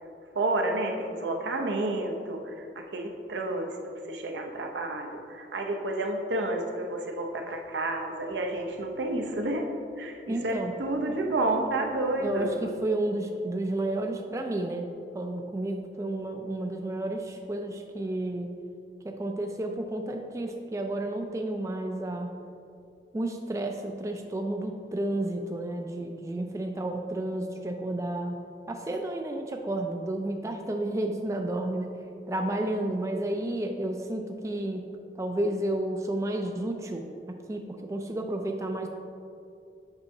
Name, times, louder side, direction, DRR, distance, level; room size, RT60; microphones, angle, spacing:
voice 1, 0.3-2.5 2.9-3.8 4.1-9.7 10.0-12.5, right 2 dB, 90° right, 2 dB, 0.7 m, -30 dB
voice 2, 10.3-10.7 12.2-14.9 15.1-18.5 19.0-22.3 23.1-28.4 28.7-31.9 32.3-34.9 35.2-38.9, right 1 dB, 15° right, 4 dB, 0.3 m, -31 dB
8.0 x 5.7 x 2.7 m, 2.6 s
head